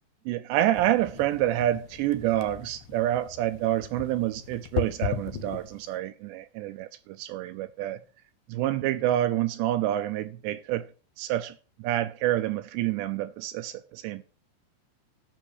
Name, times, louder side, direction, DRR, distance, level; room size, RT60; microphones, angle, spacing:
voice 1, 0.3-8.0 8.5-10.9 11.2-14.2, right 13 dB, 85° right, 2.5 m, -28 dB
sound 1, 0.7-6.0, left 8 dB, 75° left, 2.6 m, -37 dB
14.0 x 6.4 x 6.5 m
omnidirectional pair, 5.7 m